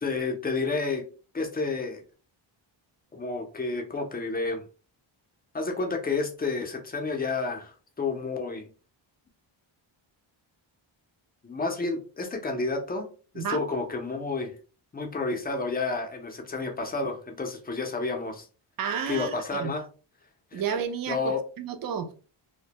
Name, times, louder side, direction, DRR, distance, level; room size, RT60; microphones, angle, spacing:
voice 1, 0.0-1.0 1.3-2.0 3.1-4.6 5.5-8.7 11.4-13.1 13.3-14.5 14.9-18.5 19.1-19.9 20.5-20.6 21.1-21.4, left 3 dB, 20° left, 0.5 m, -30 dB
voice 2, 18.8-19.3 19.6-19.7 20.5-21.2 21.6-22.1, right 7 dB, 45° right, 0.5 m, -30 dB
2.1 x 2.1 x 2.7 m
cardioid pair, 95°, 49 cm